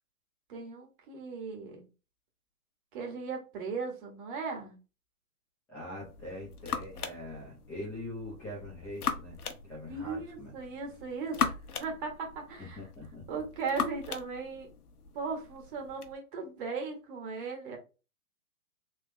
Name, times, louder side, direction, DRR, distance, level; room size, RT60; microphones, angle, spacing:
voice 1, 0.5-1.9 2.9-4.7 9.9-11.5 11.8-12.8 13.3-14.7 15.1-17.8, right 4 dB, 35° right, 1.7 m, -37 dB
voice 2, 5.7-9.4 9.6-10.5 12.6-13.4, left 1 dB, 5° left, 0.7 m, -43 dB
sound 1, 6.0-16.1, left 7 dB, 75° left, 1.0 m, -39 dB
3.5 x 3.1 x 3.3 m
hypercardioid pair, 155°, 45 cm